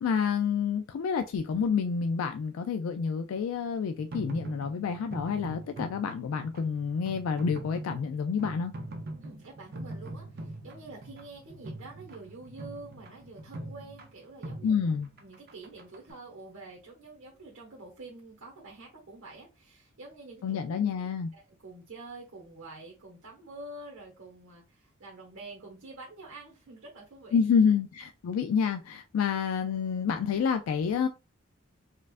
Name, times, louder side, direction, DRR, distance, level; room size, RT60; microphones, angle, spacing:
voice 1, 0.0-8.7 14.6-15.1 20.4-21.3 27.3-31.1, left 6 dB, 85° left, 0.3 m, -28 dB
sound 1, 4.0-16.1, right 1 dB, 50° right, 0.5 m, -42 dB
voice 2, 9.2-14.8 15.2-20.6 21.3-27.4, right 2 dB, 85° right, 1.1 m, -47 dB
4.3 x 2.4 x 2.4 m
head